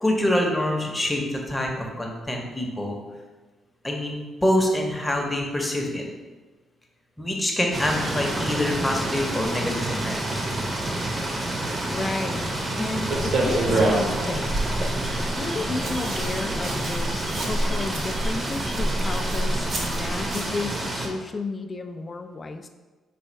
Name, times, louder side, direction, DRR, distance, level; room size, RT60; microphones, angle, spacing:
voice 1, 0.0-3.0 3.8-6.1 7.2-10.4, left 1 dB, 10° left, 0 dB, 0.8 m, -25 dB
sound 1, 7.7-21.1, right 1 dB, 30° right, 0.7 m, -29 dB
voice 2, 11.9-12.5 12.8-14.8 15.4-22.7, left 3 dB, 35° left, 7 dB, 0.3 m, -32 dB
sound 2, 13.1-20.5, right 1 dB, 70° right, 0.9 m, -28 dB
4.1 x 2.2 x 4.5 m, 1.3 s
cardioid pair, 90°, 0 cm